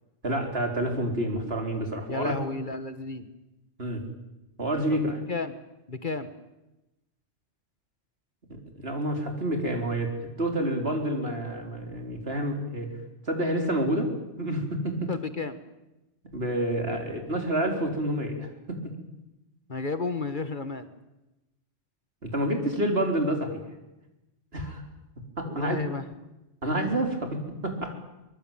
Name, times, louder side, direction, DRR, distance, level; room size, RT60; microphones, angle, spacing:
voice 1, 0.2-2.4 3.8-4.0 4.6-5.2 8.5-12.9 13.3-14.1 14.4-15.1 16.3-18.9 22.2-23.6 24.5-24.8 25.4-25.8 26.6-27.9, right 1 dB, 55° right, 3 dB, 4.5 m, -28 dB
voice 2, 2.1-3.3 4.9-5.6 5.9-6.3 15.1-15.6 19.7-20.9 25.4-26.0, left 3 dB, 45° left, 10 dB, 1.6 m, -32 dB
23.5 x 22.0 x 9.1 m, 0.97 s
omnidirectional pair, 1.2 m